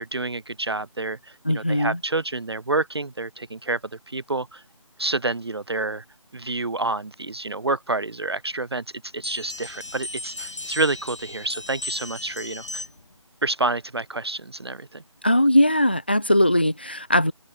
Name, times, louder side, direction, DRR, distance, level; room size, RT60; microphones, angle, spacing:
voice 1, 0.0-3.8 4.1-4.6 5.0-6.0 6.3-8.8 9.1-12.9 13.4-15.0, right 2 dB, 50° right, 0.6 m, -28 dB
voice 2, 1.4-2.0 15.2-17.3, left 1 dB, 20° left, 0.5 m, -20 dB
sound 1, 9.2-13.2, left 2 dB, 60° left, 3.1 m, -36 dB
open air
figure-of-eight pair, 160°, 17 cm